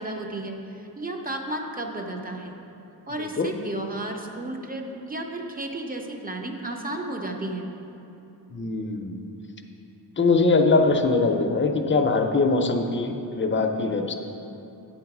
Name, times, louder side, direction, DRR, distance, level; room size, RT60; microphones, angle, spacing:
voice 1, 0.0-2.5 3.1-7.7, right 1 dB, 20° right, 2 dB, 0.6 m, -33 dB
voice 2, 3.2-3.5 8.5-9.2 10.2-14.1, left 3 dB, 30° left, 4 dB, 0.5 m, -22 dB
9.0 x 3.9 x 5.9 m, 2.9 s
wide cardioid pair, 125°, 41 cm